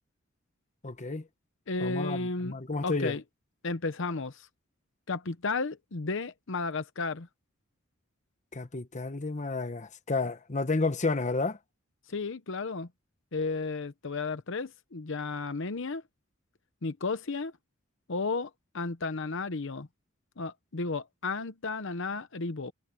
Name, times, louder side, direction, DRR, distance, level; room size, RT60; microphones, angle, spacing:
voice 1, 0.8-1.3 1.8-3.2 8.5-11.6, left 3 dB, 35° left, 1.2 m, -31 dB
voice 2, 1.7-2.6 2.8-3.2 3.6-4.5 5.1-7.3 12.1-12.9 13.3-16.0 16.8-17.5 18.1-19.9 20.4-22.7, left 3 dB, 65° left, 0.9 m, -33 dB
head